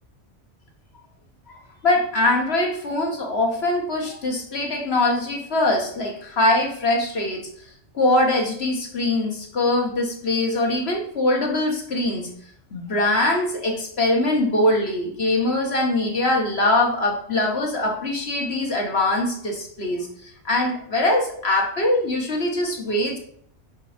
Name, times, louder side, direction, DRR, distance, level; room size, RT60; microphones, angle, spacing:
voice 1, 1.8-7.4 7.9-12.4 12.7-23.2, left 2 dB, 65° left, 1 dB, 1.9 m, -22 dB
8.0 x 5.8 x 4.5 m, 0.65 s
omnidirectional pair, 1.2 m